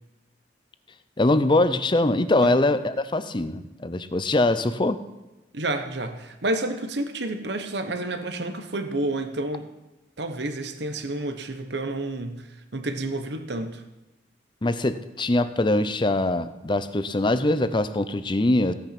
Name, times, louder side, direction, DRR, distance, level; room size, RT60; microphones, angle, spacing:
voice 1, 1.2-5.0 14.6-18.7, left 2 dB, 25° left, 12 dB, 0.6 m, -22 dB
voice 2, 5.5-9.6 10.2-13.8, right 2 dB, 65° right, 8 dB, 1.1 m, -30 dB
16.0 x 9.0 x 5.9 m, 1.0 s
head